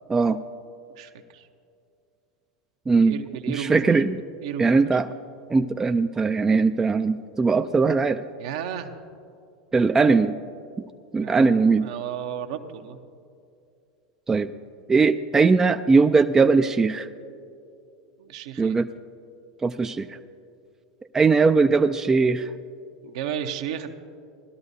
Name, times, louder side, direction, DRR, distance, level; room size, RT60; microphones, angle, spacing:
voice 1, 0.9-1.5 3.0-4.0 4.4-4.8 8.4-8.9 11.2-13.0 18.2-18.8 23.0-23.9, right 9 dB, 65° right, 6 dB, 0.9 m, -34 dB
voice 2, 2.9-3.2 3.5-4.2 4.6-5.1 5.5-8.2 9.7-10.4 11.1-11.9 14.3-14.5 14.9-17.1 18.6-18.9 19.6-20.2 21.1-22.5, right 4 dB, 15° right, 8 dB, 0.4 m, -20 dB
18.5 x 12.5 x 2.7 m, 2.5 s
hypercardioid pair, 90°, 3 cm